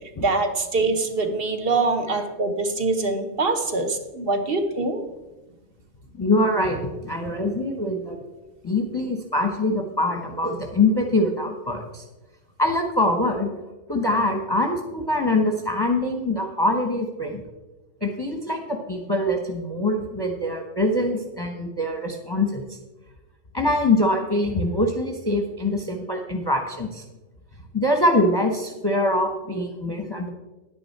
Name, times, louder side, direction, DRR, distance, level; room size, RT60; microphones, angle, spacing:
voice 1, 0.2-5.0, right 3 dB, 45° right, 6 dB, 1.2 m, -24 dB
voice 2, 6.1-8.2 8.6-12.0 12.6-13.5 13.9-17.4 18.0-22.6 23.5-27.0 27.7-30.3, left 1 dB, 20° left, 3 dB, 1.0 m, -24 dB
10.5 x 9.8 x 4.2 m, 1.1 s
omnidirectional pair, 1.5 m